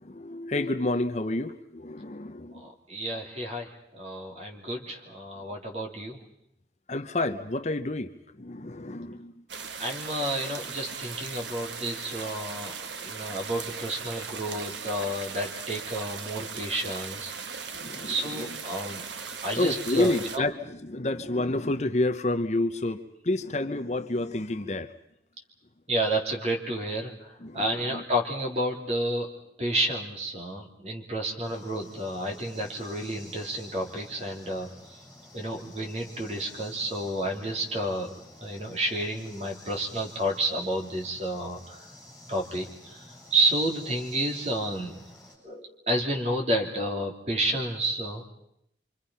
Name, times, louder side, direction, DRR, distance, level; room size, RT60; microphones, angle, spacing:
voice 1, 0.0-2.6 6.9-8.1 8.4-9.3 17.7-18.4 19.6-24.9 27.4-28.0, left 2 dB, 40° left, 8 dB, 0.8 m, -29 dB
voice 2, 2.5-6.2 9.8-12.7 13.0-17.6 18.0-19.0 19.4-20.5 25.9-29.3 29.6-35.0 35.3-38.1 38.4-41.8 42.3-45.0 45.4-48.3, right 1 dB, 35° right, 2 dB, 3.4 m, -30 dB
sound 1, 9.5-20.4, right 5 dB, 85° right, 1.3 m, -38 dB
sound 2, 31.4-45.4, left 1 dB, 5° right, 7.6 m, -50 dB
27.5 x 26.0 x 5.7 m, 0.76 s
head